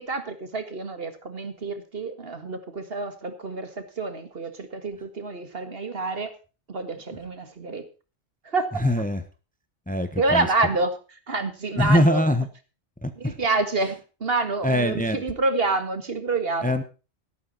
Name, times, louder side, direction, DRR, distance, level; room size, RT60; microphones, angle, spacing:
voice 1, 0.0-6.3 6.7-7.8 8.4-8.9 10.2-12.3 13.2-16.8, right 3 dB, 60° right, 9 dB, 2.0 m, -28 dB
voice 2, 8.8-9.2 9.9-10.5 11.8-12.4 13.0-13.1 14.6-15.2 16.6-16.8, left 1 dB, 10° left, 9 dB, 1.1 m, -22 dB
13.0 x 12.0 x 4.1 m, 0.33 s
omnidirectional pair, 1.1 m